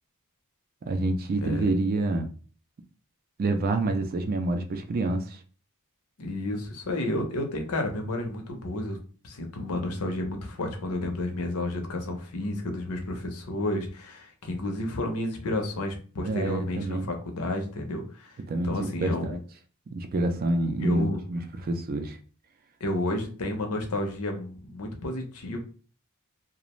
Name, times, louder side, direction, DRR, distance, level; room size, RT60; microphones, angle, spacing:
voice 1, 0.9-2.3 3.4-5.4 16.2-17.1 18.5-19.4 19.9-22.2, right 2 dB, 40° right, 0.4 m, -27 dB
voice 2, 6.2-9.0 9.2-18.4 18.6-19.3 20.8-21.2 22.8-25.6, left 1 dB, 75° left, 0.6 m, -31 dB
2.4 x 2.1 x 2.9 m
head